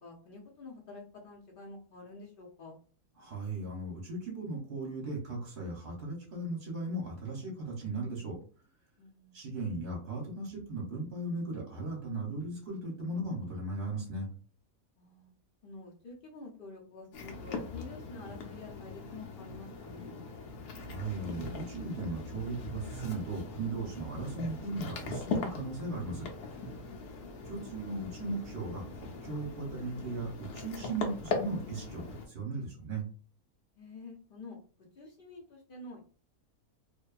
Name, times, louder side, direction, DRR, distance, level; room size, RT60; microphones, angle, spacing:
voice 1, 0.0-2.8 9.0-9.4 15.0-15.3 15.6-20.2 26.8-27.1 33.8-36.0, left 2 dB, 60° left, -1 dB, 0.6 m, -49 dB
voice 2, 3.2-8.4 9.3-14.3 20.7-26.3 27.4-33.1, right 2 dB, 50° right, -2 dB, 0.8 m, -37 dB
sound 1, 17.1-32.3, left 3 dB, 90° left, 1.1 m, -40 dB
2.6 x 2.2 x 2.3 m, 0.40 s
omnidirectional pair, 1.5 m